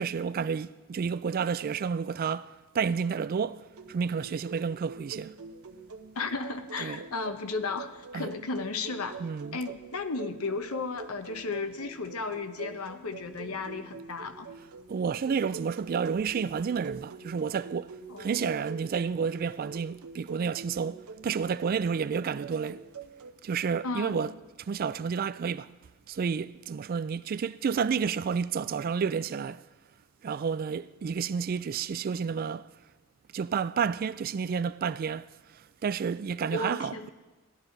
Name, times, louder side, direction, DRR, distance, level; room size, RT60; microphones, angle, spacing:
voice 1, 0.0-5.3 6.8-7.0 8.1-8.3 9.2-9.6 14.9-22.8 23.4-24.3 24.7-25.7 26.1-29.6 30.2-32.7 33.3-35.3 35.8-37.1, right 6 dB, 40° right, 0.3 m, -30 dB
sound 1, 3.7-23.3, right 4 dB, 85° right, 0.9 m, -45 dB
voice 2, 6.2-9.2 9.5-14.5 18.1-18.5 23.8-24.3 36.5-37.1, left 3 dB, 85° left, 0.9 m, -34 dB
16.0 x 11.5 x 4.0 m
head